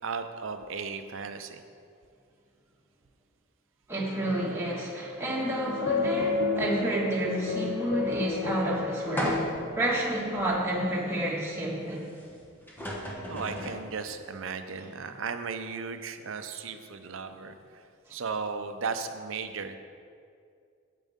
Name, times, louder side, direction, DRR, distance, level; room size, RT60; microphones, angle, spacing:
voice 1, 0.0-1.6 13.3-19.8, right 5 dB, 65° right, 8 dB, 0.6 m, -36 dB
voice 2, 3.9-9.4 9.7-12.1, right 1 dB, 10° right, -5 dB, 1.7 m, -30 dB
sound 1, 5.2-10.1, left 3 dB, 55° left, 0.9 m, -31 dB
sound 2, 9.2-9.8 10.4-10.5 12.3-12.4 12.7-13.9, equal, 10° left, 1.1 m, -32 dB
9.1 x 8.3 x 3.6 m, 2.3 s
head